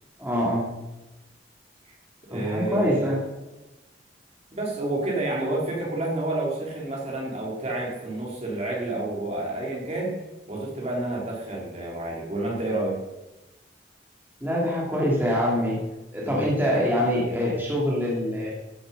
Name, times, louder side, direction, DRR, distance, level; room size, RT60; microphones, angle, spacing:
voice 1, 0.2-0.7 2.3-3.2 14.4-15.8 16.1-18.5, equal, 10° right, -5 dB, 3.1 m, -24 dB
voice 2, 2.3-3.1 4.5-10.1 10.5-13.0 16.2-16.4 16.7-16.9, right 2 dB, 40° right, -3 dB, 3.6 m, -29 dB
15.0 x 8.0 x 5.6 m, 1.0 s
head